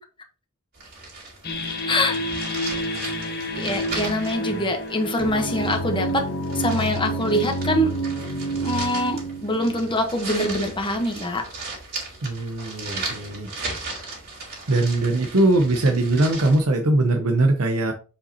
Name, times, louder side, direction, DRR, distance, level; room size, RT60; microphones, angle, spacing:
sound 1, 0.7-16.6, right 3 dB, 45° right, 3.4 m, -37 dB
sound 2, 1.4-10.8, right 1 dB, 50° left, 1.3 m, -29 dB
voice 1, 1.9-2.2 2.4-2.8 3.5-6.2 6.5-7.9 8.6-11.4, left 1 dB, 25° left, 4 dB, 1.1 m, -24 dB
voice 2, 12.2-13.5 14.7-17.9, right 2 dB, 80° right, 4 dB, 0.9 m, -21 dB
7.0 x 5.5 x 2.9 m, 0.35 s
head